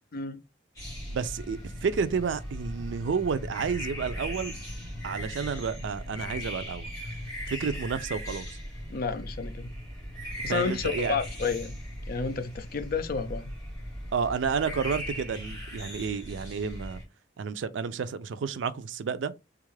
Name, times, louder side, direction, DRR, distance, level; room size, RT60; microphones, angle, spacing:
voice 1, 0.1-0.4 8.9-9.8 10.4-11.8 12.1-13.5, left 5 dB, 55° left, 0.5 m, -31 dB
sound 1, 0.7-17.0, equal, 20° left, 1.6 m, -38 dB
voice 2, 1.1-4.5 5.0-6.9 7.5-8.5 10.5-11.2 14.1-17.0 17.4-19.3, right 6 dB, 80° right, 0.4 m, -30 dB
3.6 x 2.4 x 3.1 m
head